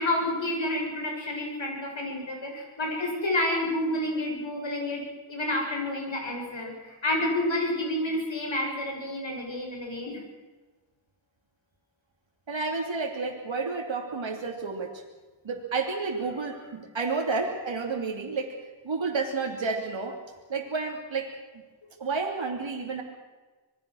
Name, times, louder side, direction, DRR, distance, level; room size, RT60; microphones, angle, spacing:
voice 1, 0.0-10.2, left 1 dB, 80° left, 1 dB, 7.8 m, -29 dB
voice 2, 12.5-15.0 15.4-18.6 18.8-20.2 20.5-21.4 22.0-23.0, right 4 dB, 85° right, 1 dB, 3.0 m, -30 dB
26.5 x 21.0 x 6.4 m, 1.3 s
wide cardioid pair, 60°, 45 cm